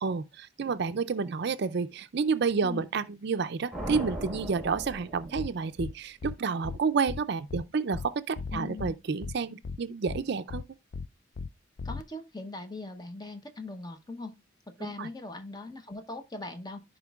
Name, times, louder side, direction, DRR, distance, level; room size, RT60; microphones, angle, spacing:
voice 1, 0.0-10.6 14.8-15.1, right 5 dB, 55° right, 0.4 m, -30 dB
sound 1, 3.7-6.0, right 1 dB, ahead, 1.5 m, -38 dB
sound 2, 5.4-5.5 5.8-5.9 6.2-6.4 6.6-6.8 7.1-7.2 7.5-7.6 7.9-8.1 8.4-8.9 9.2-9.4 9.6-9.8 10.1-10.2 10.5-10.6 10.9-11.1 11.4-11.5 11.8-12.0, left 4 dB, 50° left, 0.4 m, -36 dB
voice 2, 8.5-9.0 11.8-14.3 14.7-16.8, left 2 dB, 20° left, 0.9 m, -40 dB
14.5 x 5.0 x 2.3 m
head